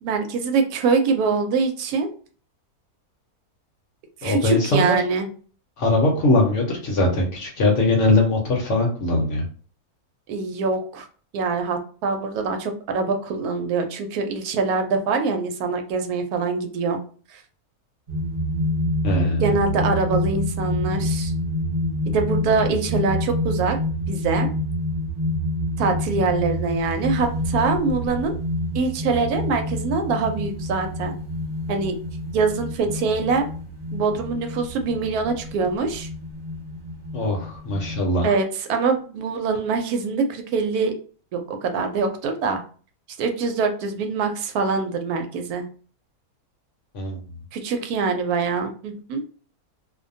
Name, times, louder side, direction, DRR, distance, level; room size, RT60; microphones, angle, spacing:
voice 1, 0.0-2.1 4.2-5.3 10.3-11.1 11.3-17.0 17.3-17.4 19.4-21.3 22.1-23.8 24.1-24.5 25.8-28.3 28.7-31.1 31.7-32.0 32.3-33.5 33.9-36.1 38.2-40.9 41.3-42.6 43.2-45.7 47.5-49.2, right 4 dB, 80° right, 5 dB, 1.1 m, -24 dB
voice 2, 4.2-5.0 5.8-9.4 19.0-19.5 37.1-38.3 46.9-47.2, left 2 dB, 60° left, -1 dB, 0.9 m, -21 dB
sound 1, 18.1-38.0, left 1 dB, 45° right, 0.8 m, -27 dB
2.6 x 2.1 x 2.6 m, 0.41 s
omnidirectional pair, 1.6 m